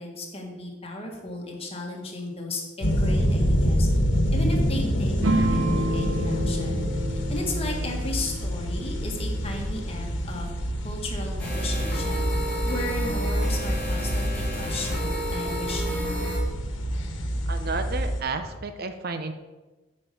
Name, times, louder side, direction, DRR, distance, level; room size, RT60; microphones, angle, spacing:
voice 1, 0.0-3.9 4.3-6.8 7.1-10.5 10.8-12.3 12.6-16.0, left 2 dB, 30° left, 0 dB, 1.8 m, -35 dB
sound 1, 2.8-18.2, equal, 75° left, 1.3 m, -27 dB
sound 2, 5.2-10.1, right 1 dB, 90° right, 0.8 m, -30 dB
sound 3, 11.4-16.4, right 1 dB, 10° left, 3.5 m, -31 dB
voice 2, 17.5-19.3, right 4 dB, 50° right, 8 dB, 0.7 m, -31 dB
8.8 x 5.4 x 6.9 m, 1.2 s
head